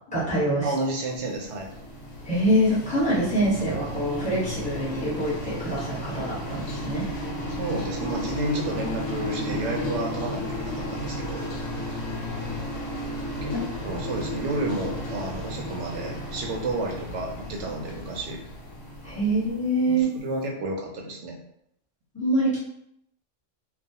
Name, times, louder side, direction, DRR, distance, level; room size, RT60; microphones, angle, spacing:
voice 1, 0.1-0.7 2.2-7.1 13.5-14.0 19.0-20.1 22.1-22.6, right 1 dB, 5° left, -10 dB, 1.0 m, -25 dB
voice 2, 0.6-1.7 7.5-11.5 13.4-13.6 13.8-18.4 19.9-21.3, right 2 dB, 70° right, 0 dB, 0.8 m, -31 dB
sound 1, 1.1-20.1, left 1 dB, 75° left, 0.9 m, -34 dB
2.3 x 2.3 x 2.7 m, 0.75 s
omnidirectional pair, 1.3 m